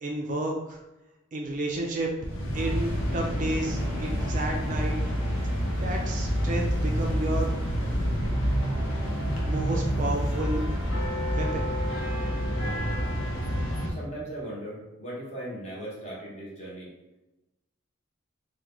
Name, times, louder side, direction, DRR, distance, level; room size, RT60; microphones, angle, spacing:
voice 1, 0.0-0.8 1.3-2.1 2.5-5.0 5.8-7.5 9.5-10.7 11.3-11.7, right 1 dB, 40° right, 1 dB, 0.3 m, -31 dB
sound 1, 2.2-13.9, equal, 75° left, 0.7 m, -28 dB
sound 2, 2.5-12.3, right 1 dB, 10° right, 1.0 m, -45 dB
voice 2, 13.9-16.9, right 1 dB, 35° left, -5 dB, 0.9 m, -38 dB
3.5 x 2.2 x 3.0 m, 1.0 s
head